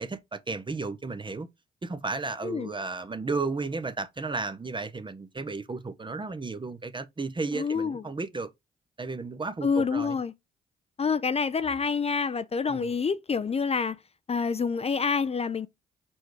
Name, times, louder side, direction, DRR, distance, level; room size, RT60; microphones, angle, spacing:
voice 1, 0.0-1.5 1.8-8.5 9.0-10.2 12.7-12.9, right 3 dB, 25° right, 0.8 m, -33 dB
voice 2, 7.5-8.0 9.6-10.3 11.0-14.0 14.3-15.7, left 5 dB, 30° left, 0.6 m, -27 dB
4.6 x 4.4 x 4.7 m
hypercardioid pair, 45°, 20 cm